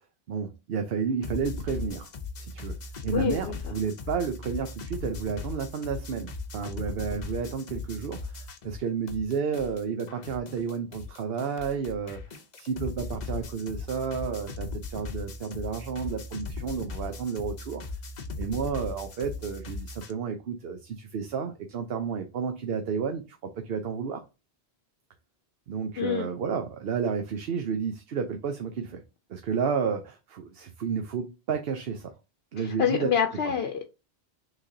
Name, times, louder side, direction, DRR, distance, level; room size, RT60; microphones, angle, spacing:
voice 1, 0.3-2.1 2.4-2.8 3.0-12.2 12.5-17.8 18.4-23.4 23.6-24.2 25.7-29.0 29.3-32.1 32.5-33.1 33.4-33.5, right 6 dB, 70° right, 0.9 m, -31 dB
sound 1, 1.2-8.8 9.1-20.1, left 3 dB, 50° left, 0.8 m, -38 dB
voice 2, 3.1-3.6 26.0-26.3 32.6-33.9, left 7 dB, 75° left, 0.9 m, -27 dB
5.9 x 3.3 x 2.7 m
omnidirectional pair, 1.1 m